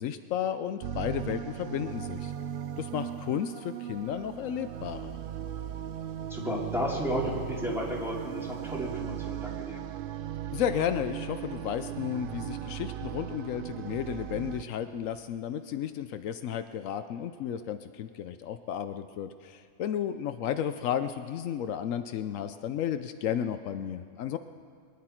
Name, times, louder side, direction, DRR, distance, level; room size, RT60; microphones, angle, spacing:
voice 1, 0.0-2.3 2.8-5.2 10.5-24.4, left 9 dB, 80° left, 10 dB, 1.0 m, -33 dB
sound 1, 0.8-14.6, right 10 dB, 65° right, 0.5 m, -38 dB
voice 2, 6.3-9.8, equal, ahead, -4 dB, 2.4 m, -33 dB
23.5 x 10.5 x 4.4 m, 2.1 s
omnidirectional pair, 1.4 m